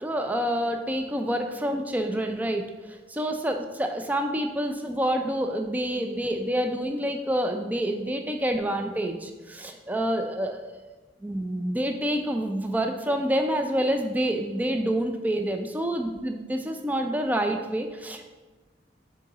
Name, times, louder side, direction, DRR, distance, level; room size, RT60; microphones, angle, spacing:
voice 1, 0.0-10.6 11.2-18.2, right 1 dB, 10° right, 4 dB, 0.3 m, -27 dB
6.4 x 3.9 x 3.8 m, 1.2 s
head